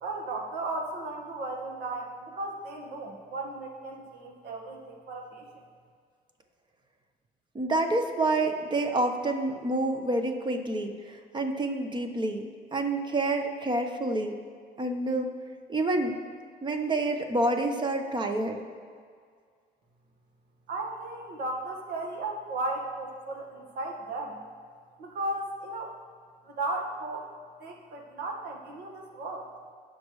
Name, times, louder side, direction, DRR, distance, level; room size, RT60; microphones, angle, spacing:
voice 1, 0.0-5.6 20.7-24.4 25.0-25.9 26.5-27.3 27.6-29.5, right 2 dB, 75° right, 1 dB, 1.7 m, -35 dB
voice 2, 7.5-14.4 14.8-15.3 15.7-16.2 16.6-18.6, right 2 dB, 25° right, 5 dB, 1.1 m, -28 dB
18.0 x 6.1 x 3.2 m, 2.1 s
cardioid pair, 110°, 17 cm